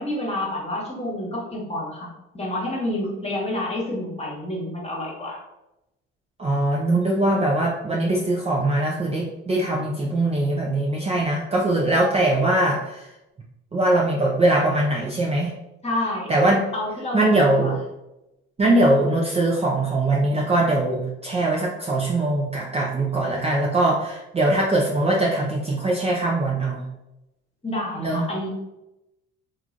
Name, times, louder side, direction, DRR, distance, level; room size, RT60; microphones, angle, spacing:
voice 1, 0.0-2.1 2.3-5.4 15.8-16.3 16.7-17.7 27.6-28.5, left 1 dB, 20° left, -3 dB, 1.2 m, -28 dB
voice 2, 6.4-13.0 13.7-15.5 16.3-16.6 17.1-17.7 18.6-26.8 28.0-28.2, right 1 dB, 20° right, -3 dB, 0.5 m, -21 dB
2.9 x 2.5 x 2.5 m, 0.92 s
supercardioid pair, 70°, 30 cm